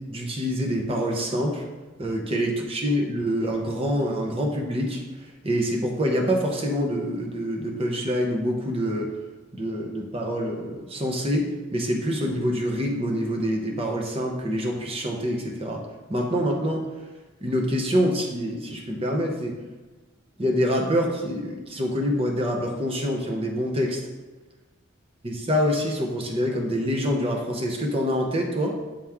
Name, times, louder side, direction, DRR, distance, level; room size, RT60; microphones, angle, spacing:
voice 1, 0.1-1.6 2.0-9.1 9.5-15.8 16.1-16.8 17.4-19.5 20.4-24.0 25.2-28.7, equal, 30° right, 0 dB, 0.8 m, -26 dB
8.6 x 3.1 x 3.5 m, 1.2 s
head